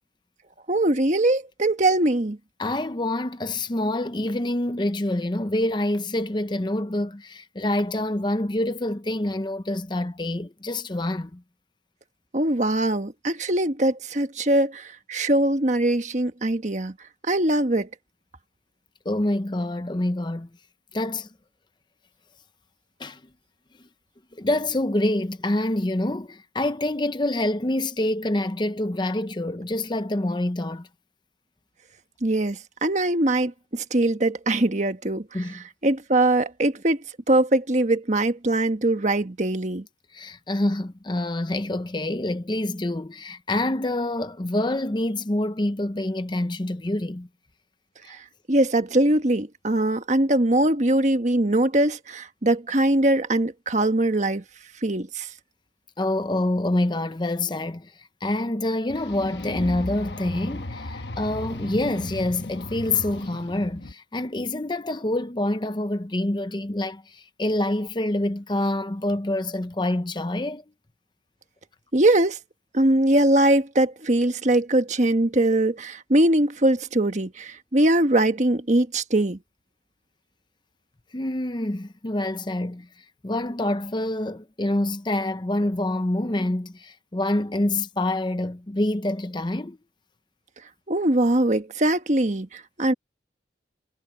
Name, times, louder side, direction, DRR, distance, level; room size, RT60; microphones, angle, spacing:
voice 1, 0.7-2.4 12.3-16.9 17.3-17.9 32.2-35.2 35.8-37.0 37.3-39.8 48.5-54.4 54.8-55.3 71.9-72.4 72.7-79.4 90.9-92.9, right 1 dB, 40° right, 1.4 m, -22 dB
voice 2, 2.6-11.4 19.0-20.5 20.9-21.3 23.0-23.2 24.3-30.9 35.3-35.6 40.1-47.3 48.0-48.1 56.0-70.6 81.1-82.9 83.2-89.8, left 1 dB, 25° left, 0.8 m, -26 dB
sound 1, 58.9-63.9, left 2 dB, 75° left, 1.2 m, -35 dB
head